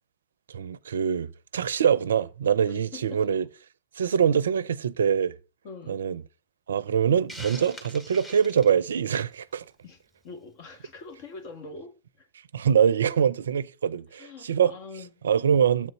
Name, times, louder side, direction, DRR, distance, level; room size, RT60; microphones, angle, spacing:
voice 1, 0.5-3.4 4.0-5.3 5.9-6.2 6.7-9.6 12.5-14.7 15.2-15.9, right 8 dB, 80° right, 0.4 m, -24 dB
voice 2, 2.7-3.2 4.2-4.4 5.6-6.1 9.8-12.3 14.1-15.1, left 4 dB, 55° left, 1.6 m, -44 dB
Hiss, 7.3-9.4, equal, 10° left, 1.4 m, -43 dB
7.3 x 4.0 x 5.5 m
hypercardioid pair, 95°, 0 cm